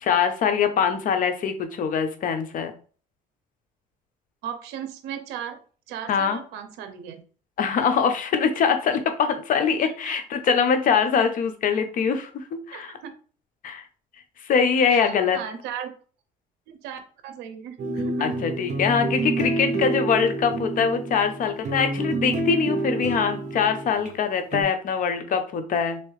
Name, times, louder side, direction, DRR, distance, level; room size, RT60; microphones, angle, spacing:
voice 1, 0.0-2.7 6.1-6.4 7.6-12.9 13.6-13.8 14.4-15.4 18.2-26.0, left 6 dB, 55° left, 8 dB, 0.7 m, -23 dB
voice 2, 4.4-5.6 5.9-7.2 10.0-10.2 12.7-13.1 14.9-15.9 16.7-18.5, right 8 dB, 90° right, 8 dB, 0.6 m, -36 dB
sound 1, 17.8-24.1 24.5-24.6, right 2 dB, 45° right, 0.9 m, -28 dB
3.2 x 2.9 x 3.2 m, 0.41 s
cardioid pair, 110°, 17 cm